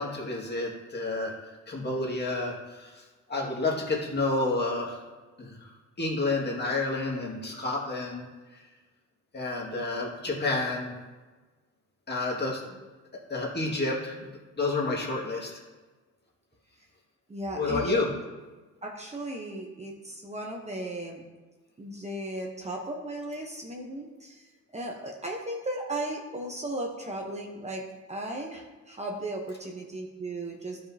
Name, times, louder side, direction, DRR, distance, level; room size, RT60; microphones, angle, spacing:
voice 1, 0.0-1.3 1.7-3.0 3.3-5.0 5.4-5.6 6.0-8.2 8.5-8.6 9.3-10.9 12.1-12.6 13.3-14.3 14.6-15.5 17.5-18.1, left 2 dB, 35° left, -3 dB, 2.1 m, -29 dB
voice 2, 17.3-18.0 18.8-21.2 21.8-30.8, right 1 dB, 20° right, 0 dB, 1.0 m, -36 dB
11.5 x 5.1 x 2.9 m, 1.3 s
cardioid pair, 90°, 30 cm